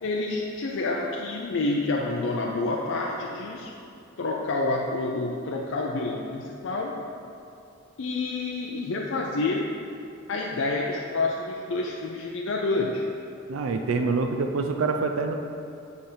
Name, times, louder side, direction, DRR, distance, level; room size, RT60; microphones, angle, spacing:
voice 1, 0.0-3.7 4.2-7.0 8.0-9.8 10.3-13.0 14.0-14.1, left 2 dB, 65° left, -2 dB, 0.5 m, -28 dB
voice 2, 13.5-15.4, right 4 dB, 85° right, 5 dB, 0.4 m, -26 dB
7.8 x 3.5 x 5.5 m, 2.6 s
head